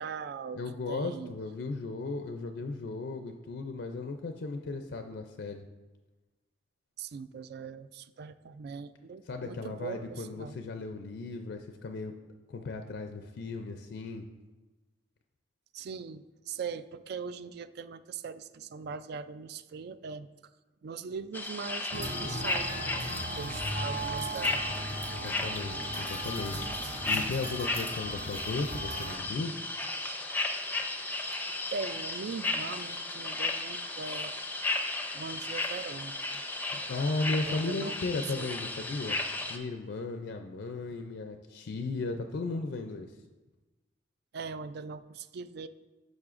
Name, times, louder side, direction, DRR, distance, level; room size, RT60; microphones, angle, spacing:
voice 1, 0.0-0.6 0.9-1.3 7.0-10.6 15.7-20.3 20.8-24.7 31.3-31.4 31.7-34.3 35.1-36.4 37.4-38.5 44.3-45.7, right 5 dB, 60° right, 13 dB, 0.3 m, -40 dB
voice 2, 0.5-5.7 9.3-12.1 12.5-14.2 25.1-29.6 36.7-39.2 39.5-43.1, left 3 dB, 65° left, 6 dB, 0.4 m, -36 dB
sound 1, 21.3-39.6, left 2 dB, 10° left, 0.5 m, -35 dB
sound 2, 21.9-29.2, right 2 dB, 80° right, 1.3 m, -38 dB
10.5 x 6.2 x 2.5 m, 1.2 s
head